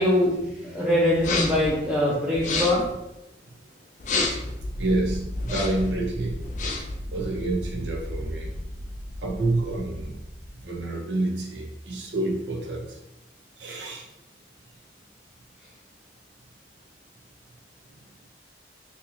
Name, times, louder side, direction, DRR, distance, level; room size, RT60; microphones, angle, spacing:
voice 1, 0.0-2.9, left 1 dB, 5° right, -7 dB, 0.5 m, -23 dB
sound 1, 1.2-1.7 2.3-2.9 4.0-4.5 5.4-5.9 6.4-7.0, left 3 dB, 45° left, 0.5 m, -28 dB
sound 2, 4.6-10.8, left 1 dB, 80° left, 0.9 m, -36 dB
voice 2, 4.7-6.4 6.8-8.5 9.2-10.2 10.6-13.0 13.6-14.1, right 2 dB, 85° right, 0 dB, 0.7 m, -28 dB
2.9 x 2.7 x 4.0 m, 0.90 s
head